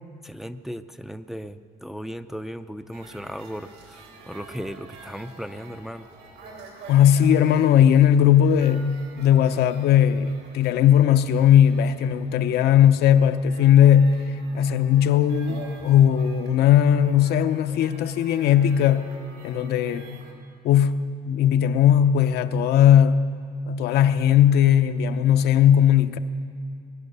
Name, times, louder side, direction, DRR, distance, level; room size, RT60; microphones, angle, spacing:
voice 1, 0.2-6.1, equal, ahead, 9 dB, 0.5 m, -36 dB
sound 1, 2.9-20.3, right 4 dB, 75° right, 3.1 m, -47 dB
voice 2, 6.9-14.2 14.5-19.1 19.4-20.2 20.6-23.3 23.7-26.2, left 9 dB, 75° left, 9 dB, 0.8 m, -18 dB
20.5 x 9.8 x 6.8 m, 2.4 s
cardioid pair, 110°, 17 cm